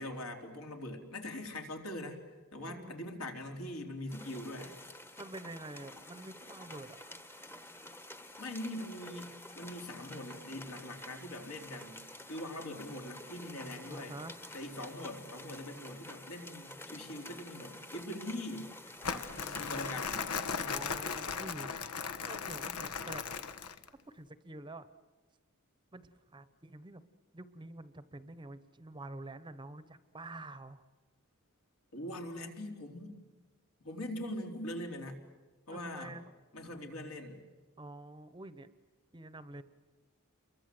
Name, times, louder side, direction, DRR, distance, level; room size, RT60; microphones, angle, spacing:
voice 1, 0.0-2.2 2.5-4.8 8.4-12.0 12.3-14.2 14.5-18.7 19.1-20.3 31.9-33.2 33.8-35.2 35.7-36.2 36.5-37.4, left 1 dB, 70° left, 2 dB, 3.9 m, -42 dB
sound 1, 4.1-20.3, left 1 dB, 10° left, 1.1 m, -50 dB
voice 2, 5.2-7.1 13.8-14.4 19.3-20.2 20.6-21.7 22.2-23.3 24.1-24.9 25.9-27.0 27.3-30.8 35.7-36.2 37.8-38.7 39.1-39.6, right 2 dB, 20° right, 13 dB, 0.9 m, -47 dB
Crumpling crinkling, 19.0-23.9, left 6 dB, 90° left, 1.3 m, -37 dB
29.0 x 23.0 x 7.8 m, 1.4 s
head